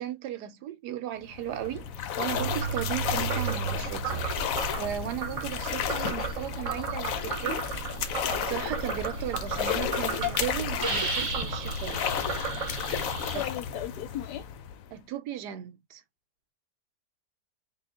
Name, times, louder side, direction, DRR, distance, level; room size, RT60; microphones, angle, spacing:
voice 1, 0.0-4.2 4.7-7.7 8.3-12.1 13.3-13.5 14.9-16.0, right 11 dB, 80° right, 1.2 m, -36 dB
sound 1, 1.2-15.0, left 8 dB, 65° left, 0.9 m, -33 dB
Frog, 2.3-13.5, right 6 dB, 55° right, 1.1 m, -35 dB
Hiss, 9.2-9.4 9.8-9.9 10.2-10.4 10.8-13.4, right 1 dB, 25° right, 0.8 m, -33 dB
voice 2, 13.3-14.5, left 13 dB, 85° left, 1.2 m, -36 dB
3.6 x 2.3 x 3.6 m
omnidirectional pair, 1.8 m